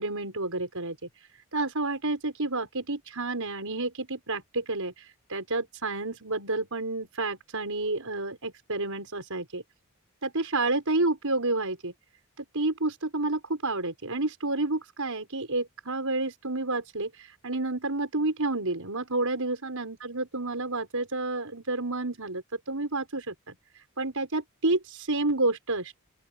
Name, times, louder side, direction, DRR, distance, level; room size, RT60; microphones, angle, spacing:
voice 1, 0.0-9.6 10.2-11.9 12.4-26.0, right 2 dB, 80° right, 5.7 m, -30 dB
open air
head